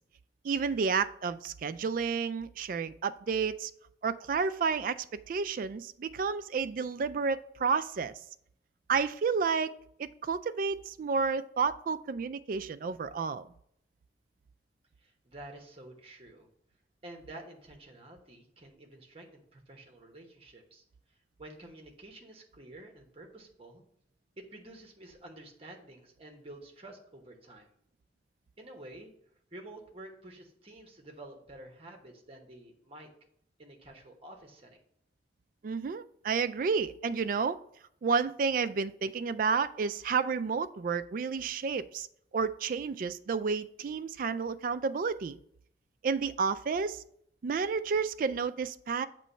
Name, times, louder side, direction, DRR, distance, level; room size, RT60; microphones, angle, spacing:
voice 1, 0.4-3.7 4.0-8.1 8.9-9.7 10.0-13.5 35.6-37.6 38.0-42.1 42.3-45.4 46.0-47.0 47.4-49.1, right 5 dB, 50° right, 13 dB, 0.3 m, -31 dB
voice 2, 15.0-16.5 17.0-20.8 21.4-23.9 24.4-27.7 28.6-29.1 29.5-33.1 33.6-34.8, right 1 dB, 35° right, 2 dB, 1.1 m, -50 dB
7.5 x 3.0 x 5.5 m, 0.70 s
head